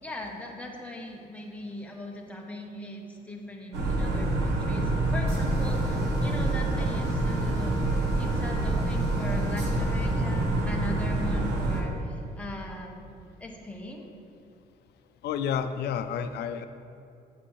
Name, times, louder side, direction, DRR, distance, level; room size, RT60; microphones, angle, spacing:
voice 1, 0.0-7.8 8.2-13.1 13.4-14.1, left 1 dB, 10° left, 0 dB, 0.9 m, -39 dB
sound 1, 3.7-11.8, right 2 dB, 80° right, 1.1 m, -26 dB
voice 2, 15.2-16.6, left 8 dB, 80° left, 10 dB, 0.5 m, -30 dB
8.6 x 7.1 x 3.2 m, 2.6 s
cardioid pair, 135°, 17 cm